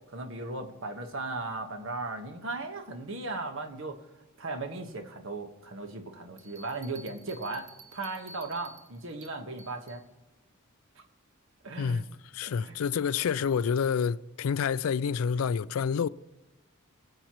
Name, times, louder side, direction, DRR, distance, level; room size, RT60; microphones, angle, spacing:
voice 1, 0.1-4.0 4.4-10.0 11.6-12.0 12.4-12.8, right 3 dB, 65° right, 1.3 m, -37 dB
Bell, 6.4-10.0, right 3 dB, 35° right, 0.8 m, -52 dB
voice 2, 12.3-16.1, left 6 dB, 80° left, 0.4 m, -28 dB
22.0 x 7.8 x 3.0 m
head